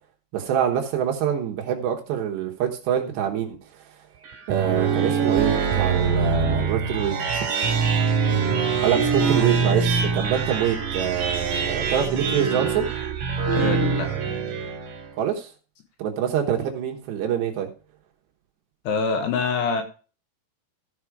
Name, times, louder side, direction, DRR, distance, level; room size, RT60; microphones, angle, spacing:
voice 1, 0.3-3.6 4.5-7.2 8.8-12.9 15.2-15.5 16.0-17.7, right 9 dB, 70° right, 1 dB, 3.1 m, -25 dB
sound 1, 4.2-15.1, right 5 dB, 50° right, 3.7 m, -24 dB
voice 2, 13.5-14.1 18.8-19.8, left 5 dB, 70° left, 5 dB, 3.1 m, -25 dB
15.0 x 5.6 x 4.8 m, 0.36 s
omnidirectional pair, 5.6 m